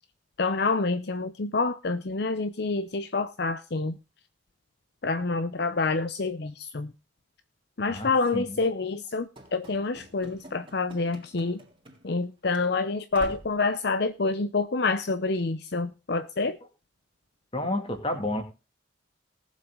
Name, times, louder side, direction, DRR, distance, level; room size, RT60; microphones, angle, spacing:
voice 1, 0.4-3.9 5.0-6.9 7.8-11.6 12.0-16.6, left 3 dB, 60° left, 11 dB, 0.7 m, -27 dB
voice 2, 7.9-8.6 17.5-18.4, left 1 dB, 30° left, 6 dB, 2.5 m, -31 dB
Run / Slam, 9.4-12.2 12.5-12.7 13.1-13.6, right 1 dB, 30° right, 3.4 m, -46 dB
19.0 x 7.5 x 3.8 m, 0.30 s
head